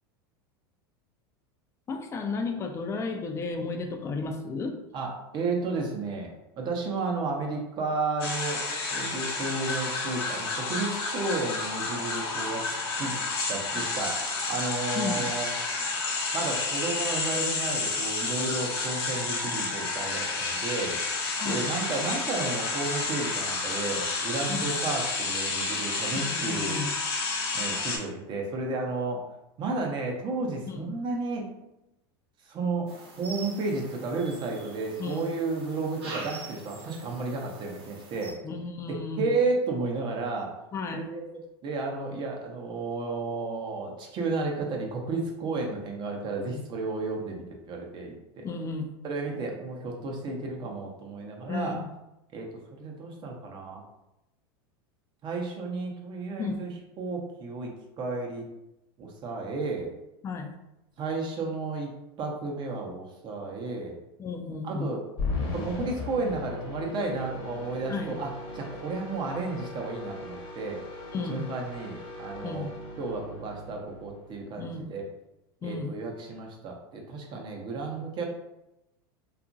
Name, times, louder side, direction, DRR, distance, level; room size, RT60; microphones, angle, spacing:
voice 1, 1.9-4.8 15.0-15.3 21.4-21.7 24.5-24.7 26.1-26.9 30.7-30.9 35.0-35.3 38.4-39.3 40.7-41.1 46.5-46.6 48.4-48.9 51.5-51.9 56.4-56.7 60.2-60.5 64.2-64.9 67.9-68.1 71.1-71.5 72.4-72.7 74.6-74.9 75.6-75.9, left 4 dB, 20° left, 4 dB, 0.4 m, -33 dB
voice 2, 4.9-8.6 8.9-13.2 13.5-14.2 14.5-15.5 16.3-21.0 21.4-26.8 27.5-29.2 29.6-31.5 32.5-32.9 33.2-38.3 38.9-40.5 40.9-41.2 41.6-48.5 49.0-51.8 52.3-52.5 52.8-53.8 55.2-56.7 57.0-58.4 59.0-59.9 61.0-61.9 62.2-64.0 64.6-65.0 65.5-70.8 71.3-72.7 73.0-75.0 75.6-78.2, right 3 dB, 35° right, 0 dB, 0.7 m, -32 dB
sound 1, 8.2-28.0, left 3 dB, 75° left, 0.8 m, -30 dB
sound 2, 32.9-38.3, right 3 dB, 85° right, 0.9 m, -44 dB
sound 3, 65.2-74.6, left 3 dB, 40° left, 0.8 m, -38 dB
2.8 x 2.4 x 2.5 m, 0.90 s
supercardioid pair, 115°, 13 cm